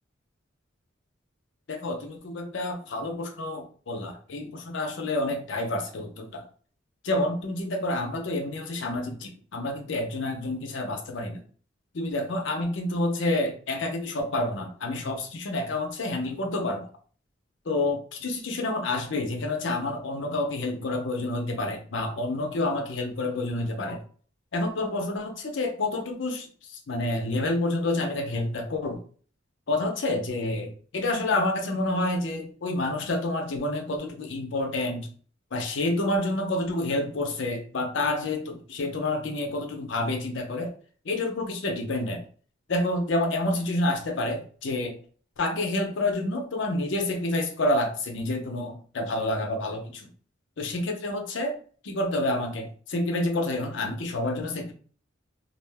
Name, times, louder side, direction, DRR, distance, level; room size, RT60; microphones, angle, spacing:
voice 1, 1.7-6.4 7.0-11.4 11.9-16.9 17.7-24.0 24.5-29.0 29.7-35.1 35.5-40.7 41.0-42.2 42.7-45.0 45.4-50.1 50.6-51.6 51.8-54.7, left 2 dB, 75° left, 3 dB, 0.6 m, -28 dB
2.4 x 2.0 x 3.3 m, 0.44 s
head